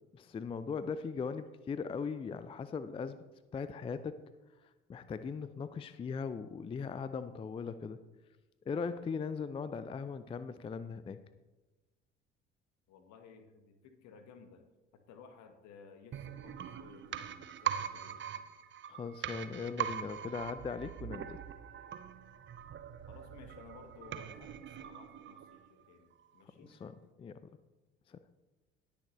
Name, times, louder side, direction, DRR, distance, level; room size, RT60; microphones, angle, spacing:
voice 1, 0.1-3.2 3.5-4.2 4.9-8.0 8.7-11.2 18.9-21.4 26.6-27.4 28.1-28.2, left 5 dB, 15° left, 13 dB, 0.4 m, -39 dB
voice 2, 12.9-14.6 14.9-18.4 23.1-26.8, left 6 dB, 55° left, 8 dB, 1.3 m, -57 dB
sound 1, 16.1-25.8 26.1-26.2, right 9 dB, 35° right, 0.7 m, -42 dB
19.0 x 6.7 x 3.1 m, 1.2 s
figure-of-eight pair, 55°, 33 cm